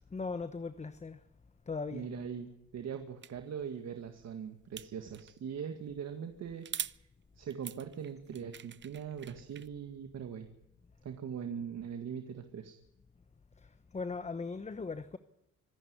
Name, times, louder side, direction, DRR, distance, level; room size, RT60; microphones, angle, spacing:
voice 1, 0.1-1.2 1.7-2.1 13.6-15.2, left 4 dB, 20° left, 1.0 m, -39 dB
voice 2, 1.9-7.0 7.4-10.5 11.0-12.8, right 7 dB, 60° right, 1.9 m, -41 dB
sound 1, 3.2-3.3 4.8-5.4 6.6-7.0 7.5-9.7, right 8 dB, 40° right, 0.7 m, -43 dB
25.0 x 11.0 x 9.7 m
cardioid pair, 90°, 30 cm